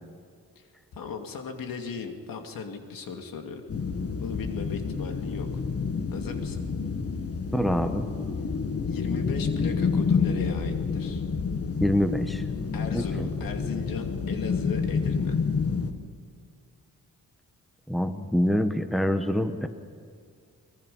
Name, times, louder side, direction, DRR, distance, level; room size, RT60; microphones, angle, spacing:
voice 1, 0.9-3.6 4.2-5.6 6.1-6.6 8.9-11.2 12.7-15.4, left 5 dB, 85° left, 4 dB, 2.4 m, -36 dB
sound 1, 3.7-15.9, left 5 dB, 45° left, 1.6 m, -29 dB
voice 2, 7.5-8.1 11.8-12.4 12.9-13.3 17.9-19.7, equal, ahead, 8 dB, 1.1 m, -25 dB
22.5 x 22.0 x 5.6 m, 2.2 s
cardioid pair, 120°, 33 cm